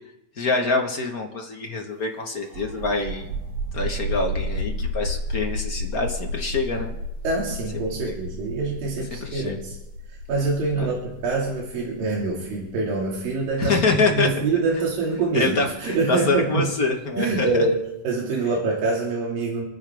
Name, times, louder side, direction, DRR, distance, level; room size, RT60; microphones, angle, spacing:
voice 1, 0.4-3.3 3.7-6.9 8.0-8.1 9.2-9.6 10.7-10.9 13.6-14.3 15.3-17.6, left 3 dB, 60° left, 2 dB, 0.9 m, -25 dB
sound 1, 2.5-15.8, equal, 75° right, 4.2 m, -32 dB
voice 2, 7.2-9.8 10.3-16.7 17.2-19.7, right 3 dB, 90° right, -3 dB, 4.0 m, -25 dB
29.0 x 10.0 x 3.5 m, 0.94 s
omnidirectional pair, 3.9 m